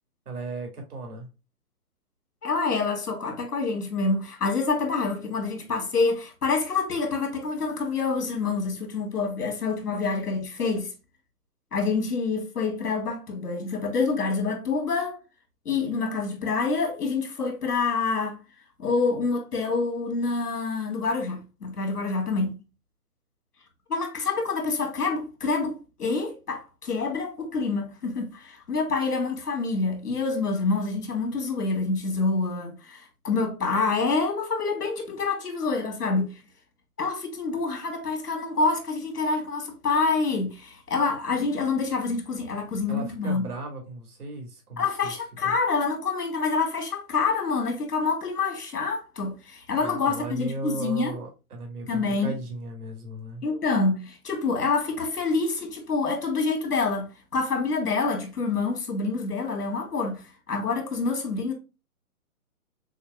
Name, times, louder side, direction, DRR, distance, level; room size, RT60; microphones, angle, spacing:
voice 1, 0.3-1.3 42.9-45.1 45.4-45.5 49.8-53.4, right 2 dB, 75° right, 2.3 m, -36 dB
voice 2, 2.4-10.9 11.7-15.2 15.6-18.4 18.8-22.6 23.9-36.4 37.0-43.5 44.8-51.2 51.9-52.3 53.4-61.5, left 4 dB, 80° left, 2.3 m, -27 dB
6.4 x 2.6 x 2.3 m
hypercardioid pair, 165°, 45 cm